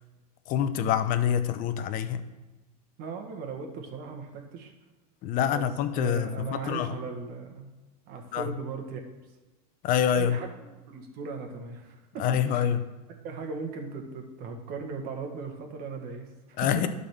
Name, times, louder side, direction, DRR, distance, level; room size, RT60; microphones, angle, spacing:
voice 1, 0.5-2.2 5.2-6.9 8.3-8.5 9.8-10.4 12.2-12.8 16.6-16.9, left 9 dB, 40° left, 0.7 m, -26 dB
voice 2, 3.0-4.7 5.4-5.6 5.9-7.7 8.1-9.0 10.1-10.5 10.9-12.7 13.2-16.6, right 5 dB, 50° right, 1.7 m, -38 dB
11.5 x 4.2 x 6.0 m
supercardioid pair, 130°, 20 cm